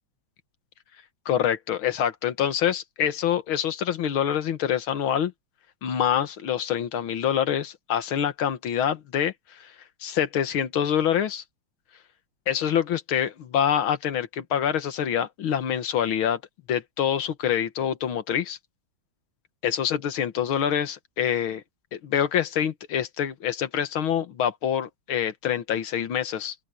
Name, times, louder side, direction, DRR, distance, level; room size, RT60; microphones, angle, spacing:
voice 1, 1.3-5.3 5.8-9.3 9.6-9.7 10.0-11.4 12.5-16.4 16.7-18.6 19.6-21.6 21.9-26.6, left 9 dB, 90° left, 2.1 m, -26 dB
open air
omnidirectional pair, 2.2 m